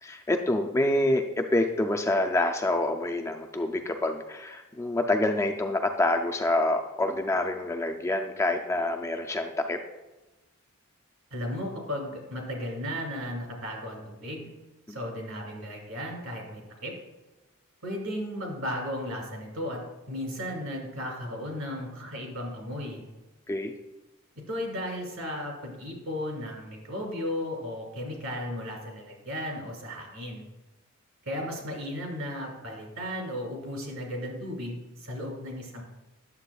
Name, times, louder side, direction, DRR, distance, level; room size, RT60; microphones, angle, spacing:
voice 1, 0.0-9.8 23.5-23.7, left 1 dB, 15° left, 4 dB, 0.3 m, -27 dB
voice 2, 11.3-14.5 14.9-16.9 17.8-19.8 20.1-23.0 24.5-30.5 31.2-35.8, equal, 75° right, 0 dB, 2.3 m, -35 dB
9.7 x 7.3 x 2.3 m, 1.1 s
head